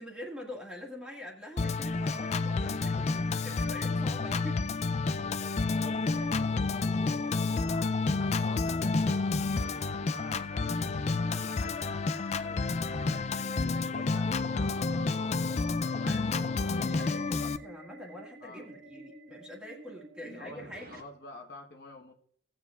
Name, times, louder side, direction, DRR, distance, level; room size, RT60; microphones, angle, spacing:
voice 1, 0.0-4.7 15.9-20.9, left 1 dB, 5° right, -1 dB, 1.8 m, -45 dB
Organ, 1.6-17.6, left 3 dB, 35° left, 0.3 m, -30 dB
voice 2, 5.0-12.0 12.4-15.5 15.9-16.6 18.4-18.7 20.2-22.1, left 2 dB, 55° left, 1 dB, 1.1 m, -49 dB
sound 1, 5.9-21.0, right 2 dB, 50° right, 1.3 m, -51 dB
17.5 x 7.5 x 2.4 m, 0.64 s
head